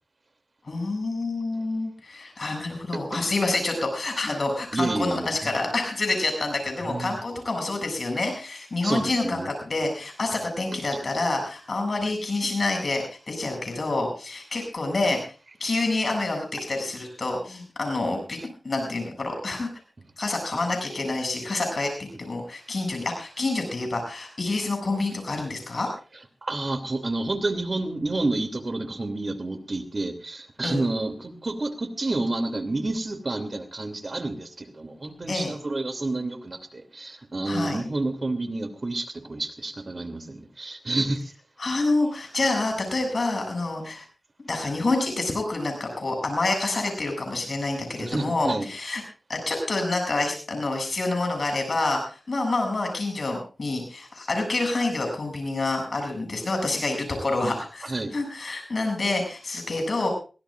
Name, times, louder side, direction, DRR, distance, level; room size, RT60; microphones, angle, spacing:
voice 1, 0.7-15.2 15.6-19.7 20.2-25.9 30.6-30.8 35.3-35.5 37.5-37.8 41.6-44.0 44.4-49.0 49.3-60.1, left 2 dB, 60° left, 4 dB, 7.4 m, -27 dB
voice 2, 4.7-5.5 6.8-7.1 8.8-9.5 10.9-11.0 26.4-41.3 48.0-48.7 57.8-58.1, right 2 dB, 45° right, 8 dB, 2.9 m, -29 dB
23.0 x 17.0 x 2.5 m, 0.35 s
cardioid pair, 50°, 0 cm